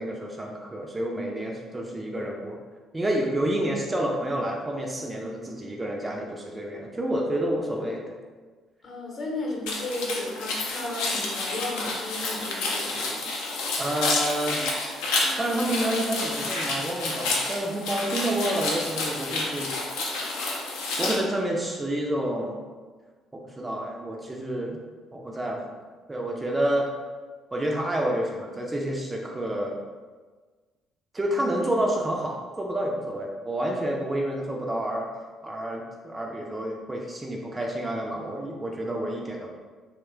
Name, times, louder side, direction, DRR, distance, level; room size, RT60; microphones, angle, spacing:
voice 1, 0.0-2.6 2.9-8.1 13.8-14.7 15.2-19.8 21.0-22.6 23.3-24.8 25.1-25.7 26.1-26.9 27.5-29.8 31.1-35.1 35.4-39.5, right 1 dB, 20° right, 0 dB, 0.4 m, -29 dB
voice 2, 8.8-13.3 20.9-21.1, left 2 dB, 45° left, -3 dB, 0.7 m, -34 dB
sound 1, 9.7-21.2, left 3 dB, 65° left, 0.4 m, -29 dB
2.8 x 2.1 x 2.3 m, 1.4 s
figure-of-eight pair, 45°, 0 cm